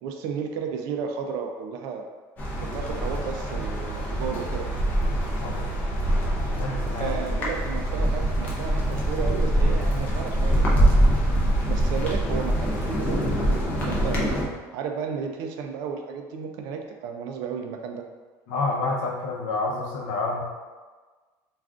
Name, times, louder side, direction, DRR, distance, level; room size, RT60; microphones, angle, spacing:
voice 1, 0.0-2.1 2.6-4.7 6.9-11.3 11.7-14.3 14.7-18.0, right 6 dB, 55° right, 4 dB, 0.3 m, -33 dB
sound 1, 2.4-14.4, right 1 dB, 20° left, 0.5 m, -24 dB
voice 2, 6.4-7.2 18.5-20.4, left 3 dB, 70° left, -2 dB, 0.6 m, -28 dB
2.4 x 2.3 x 3.5 m, 1.4 s
cardioid pair, 180°, 8 cm